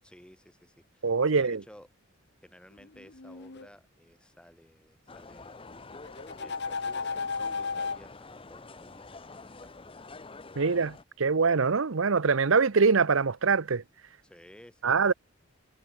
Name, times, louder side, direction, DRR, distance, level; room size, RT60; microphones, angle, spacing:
voice 1, 0.0-1.9 2.4-5.7 6.4-10.3 14.2-15.1, equal, 5° left, 6.8 m, -55 dB
voice 2, 1.0-1.6 10.6-13.8 14.8-15.1, right 5 dB, 70° right, 0.8 m, -24 dB
sound 1, 2.8-3.7 6.1-8.0, left 5 dB, 55° left, 1.4 m, -34 dB
sound 2, 5.1-11.0, left 3 dB, 25° left, 1.1 m, -47 dB
head